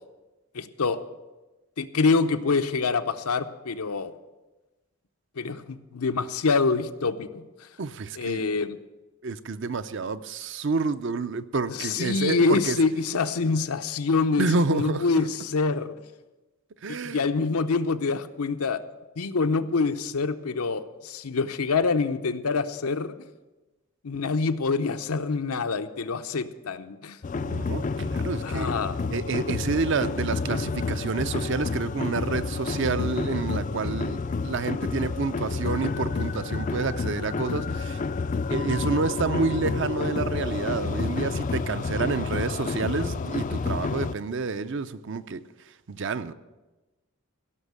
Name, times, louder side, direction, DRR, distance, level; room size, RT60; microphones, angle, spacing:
voice 1, 0.5-1.0 1.8-4.1 5.4-7.7 8.2-8.8 11.7-15.9 16.9-18.8 19.2-23.1 24.0-27.2 28.4-29.0, left 4 dB, 85° left, 0.7 m, -26 dB
voice 2, 7.8-8.4 9.2-12.8 14.4-15.0 16.8-17.2 27.3-28.7 29.1-38.0 38.5-45.4 45.9-46.3, right 4 dB, 55° right, 0.6 m, -29 dB
sound 1, 27.2-44.1, left 4 dB, 35° left, 0.3 m, -29 dB
16.5 x 6.4 x 8.1 m
head